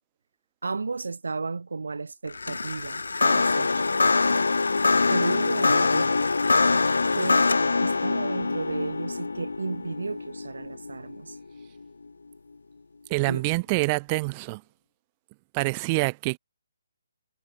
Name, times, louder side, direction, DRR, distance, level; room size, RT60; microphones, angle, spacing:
voice 1, 0.6-3.9 5.1-6.1 7.1-7.5 7.8-11.4 13.3-13.4, right 4 dB, 80° right, 2.9 m, -33 dB
sound 1, 2.3-11.6, left 3 dB, 85° left, 0.6 m, -24 dB
voice 2, 13.1-14.6 15.5-16.4, right 27 dB, 25° right, 2.4 m, -26 dB
hypercardioid pair, 150°, 0 cm